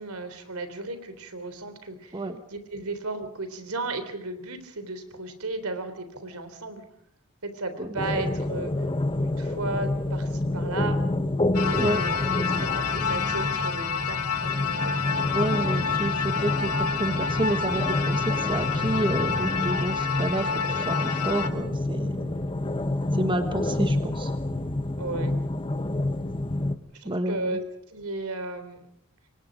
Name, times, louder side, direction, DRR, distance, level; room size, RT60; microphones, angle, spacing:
voice 1, 0.0-6.8 7.4-8.7 9.2-11.0 11.6-15.3 25.0-25.3 26.9-28.9, right 2 dB, 75° right, 10 dB, 3.6 m, -35 dB
sound 1, 8.0-26.7, left 1 dB, 25° left, 1.1 m, -28 dB
sound 2, 11.5-21.5, left 6 dB, 80° left, 1.9 m, -29 dB
voice 2, 15.3-22.3 23.1-24.3 27.0-27.6, right 1 dB, 20° right, 8 dB, 1.2 m, -30 dB
28.0 x 23.5 x 5.2 m, 0.71 s
head